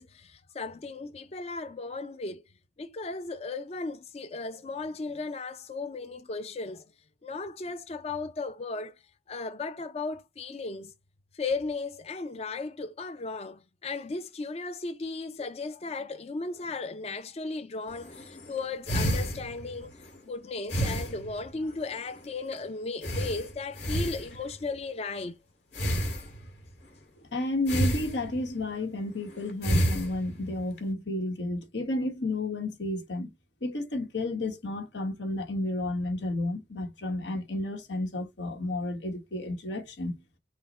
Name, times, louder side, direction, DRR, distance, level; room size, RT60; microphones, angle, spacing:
voice 1, 0.0-2.4 2.8-6.9 7.2-8.9 9.3-10.9 11.3-19.9 20.2-25.3 26.1-26.3, left 3 dB, 35° left, 0.4 m, -36 dB
sound 1, 17.9-20.2 20.7-21.9 22.1-22.3 22.5-22.6 23.0-24.7 25.7-26.7 27.7-28.7 29.3-30.8, equal, 65° left, 2.1 m, -30 dB
voice 2, 27.3-33.3 33.6-40.2, left 2 dB, 90° left, 1.2 m, -32 dB
5.6 x 2.1 x 4.1 m
head